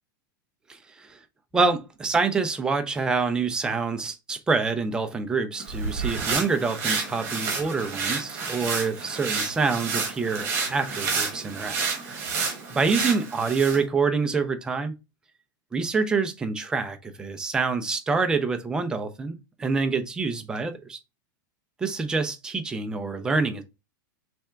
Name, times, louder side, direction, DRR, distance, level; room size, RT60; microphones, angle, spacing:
voice 1, 1.5-11.8 12.1-12.4 12.7-14.9 15.7-21.0 21.8-23.6, right 4 dB, 5° right, 0.4 m, -26 dB
sound 1, 5.6-13.8, right 4 dB, 20° right, 1.6 m, -30 dB
3.4 x 3.3 x 4.3 m
supercardioid pair, 170°, 11 cm